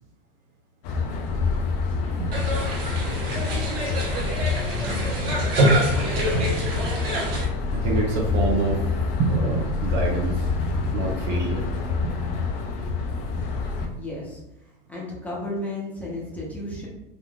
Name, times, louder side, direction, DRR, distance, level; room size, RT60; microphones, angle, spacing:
sound 1, 0.8-13.9, left 4 dB, 45° left, 0.5 m, -27 dB
sound 2, 2.3-7.4, right 1 dB, 80° right, 1.1 m, -25 dB
voice 1, 6.2-6.5 7.7-8.8 9.2-10.5 10.8-11.7 12.0-12.2 13.8-13.9, right 3 dB, 40° right, 0 dB, 0.6 m, -27 dB
voice 2, 13.9-14.4 14.9-16.9, left 1 dB, 5° left, -5 dB, 0.7 m, -33 dB
3.6 x 2.5 x 2.3 m, 0.90 s
hypercardioid pair, 125°, 29 cm